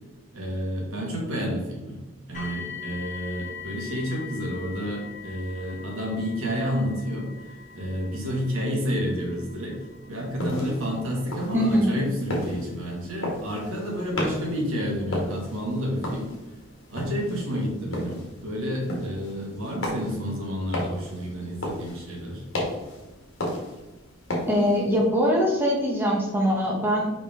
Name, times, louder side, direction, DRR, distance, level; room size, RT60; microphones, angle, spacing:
voice 1, 0.3-2.0 2.3-9.8 10.1-16.3 16.9-22.4, equal, 75° right, -1 dB, 2.0 m, -30 dB
sound 1, 2.3-15.2 16.1-16.2 16.7-16.8, left 6 dB, 35° left, 2.1 m, -43 dB
sound 2, 10.2-25.1, left 1 dB, 65° left, 1.9 m, -35 dB
voice 2, 11.5-12.0 24.5-27.1, equal, 10° right, -2 dB, 1.0 m, -22 dB
5.4 x 5.1 x 3.7 m, 1.1 s
head